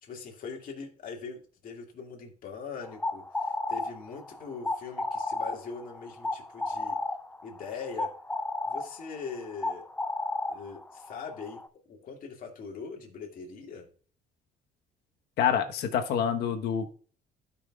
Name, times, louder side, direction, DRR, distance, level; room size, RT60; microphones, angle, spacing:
voice 1, 0.0-7.0 7.4-8.1 8.7-9.8 10.5-11.6 11.9-13.9, left 5 dB, 55° left, 0 dB, 2.2 m, -41 dB
sound 1, 2.8-11.7, left 2 dB, 10° left, 0.4 m, -34 dB
voice 2, 15.4-16.9, left 8 dB, 75° left, 5 dB, 1.2 m, -27 dB
15.5 x 5.7 x 2.4 m, 0.43 s
cardioid pair, 110°, 17 cm